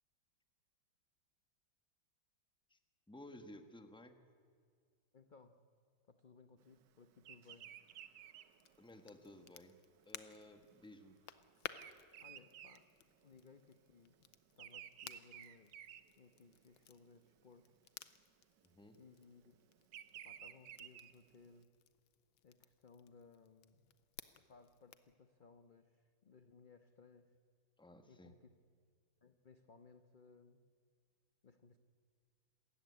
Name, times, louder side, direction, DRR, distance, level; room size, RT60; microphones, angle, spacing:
voice 1, 3.1-4.2 8.8-9.8 10.0-11.2 18.6-19.0 27.8-28.4, left 1 dB, 5° left, 7 dB, 1.0 m, -56 dB
voice 2, 5.1-5.6 6.1-7.7 12.2-12.9 13.2-14.2 14.6-15.9 16.2-17.7 18.9-19.6 20.2-21.7 22.4-23.9 24.4-27.3 28.1-28.5 29.2-30.6 31.4-31.8, left 4 dB, 45° left, 8 dB, 0.6 m, -63 dB
Bird vocalization bird call bird song, 7.2-13.6 13.9-16.8 17.3-17.6 18.6-21.6, right 10 dB, 65° right, 1.4 m, -55 dB
Crackle, 8.5-25.2, left 10 dB, 85° left, 1.7 m, -57 dB
27.0 x 14.5 x 9.6 m, 2.1 s
omnidirectional pair, 2.1 m